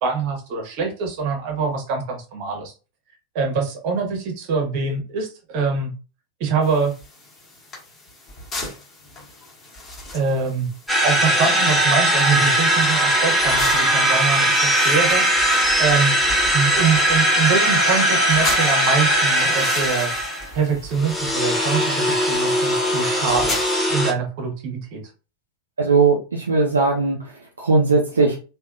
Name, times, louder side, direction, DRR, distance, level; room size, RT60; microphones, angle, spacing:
voice 1, 0.0-2.7 3.3-5.9 6.4-6.9 10.1-10.7 11.0-20.1 20.5-23.6 23.9-25.0, right 5 dB, 45° right, 2 dB, 1.1 m, -24 dB
sound 1, 6.6-23.8, left 2 dB, 20° left, 1.4 m, -37 dB
sound 2, 10.9-20.5 21.0-24.1, right 1 dB, 5° left, 0.7 m, -19 dB
sound 3, 16.2-21.0, left 1 dB, 85° left, 0.5 m, -30 dB
voice 2, 25.8-28.4, right 4 dB, 75° right, -1 dB, 0.5 m, -19 dB
3.3 x 2.4 x 2.4 m, 0.34 s
figure-of-eight pair, 90°, 0 cm